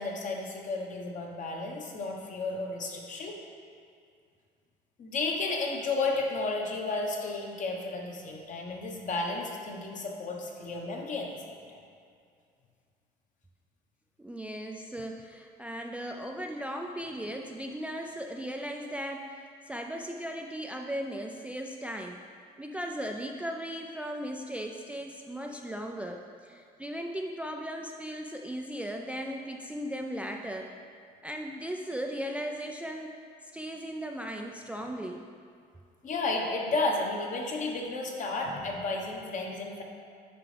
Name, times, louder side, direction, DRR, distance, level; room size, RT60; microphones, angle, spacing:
voice 1, 0.0-3.4 5.0-11.8 36.0-39.8, left 3 dB, 50° left, 0 dB, 1.1 m, -33 dB
voice 2, 14.2-22.2 22.6-30.7 31.2-33.1 33.5-35.2, equal, 5° right, 2 dB, 0.3 m, -37 dB
9.5 x 5.0 x 3.3 m, 2.3 s
cardioid pair, 110°, 17 cm